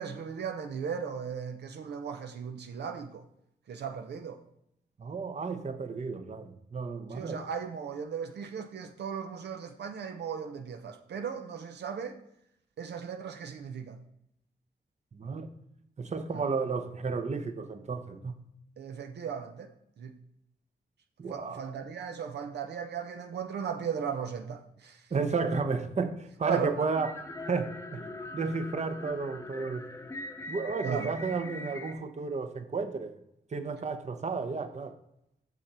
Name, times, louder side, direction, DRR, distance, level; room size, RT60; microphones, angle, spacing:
voice 1, 0.0-3.2 3.7-4.4 7.1-12.2 12.8-14.0 16.3-16.4 18.8-19.7 20.0-20.1 21.3-25.3 26.5-26.7 30.8-31.1, right 7 dB, 85° right, 0.7 m, -37 dB
voice 2, 5.0-7.4 15.1-15.5 16.0-18.3 21.2-21.7 25.1-28.0 28.3-29.8 30.5-33.2 33.5-34.9, right 4 dB, 40° right, 0.8 m, -32 dB
sound 1, 26.8-31.9, left 2 dB, 15° left, 0.8 m, -42 dB
6.8 x 6.3 x 4.3 m
cardioid pair, 70°, 17 cm